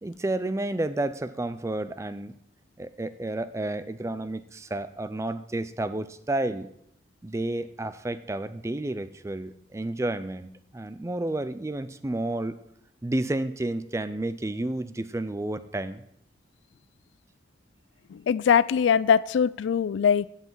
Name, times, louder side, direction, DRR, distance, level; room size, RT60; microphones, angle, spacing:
voice 1, 0.0-2.3 2.8-6.7 7.2-12.6 13.0-16.0, right 2 dB, 15° right, 13 dB, 0.4 m, -31 dB
voice 2, 18.1-20.3, left 7 dB, 80° left, 20 dB, 0.3 m, -22 dB
15.5 x 5.7 x 4.6 m, 0.72 s
head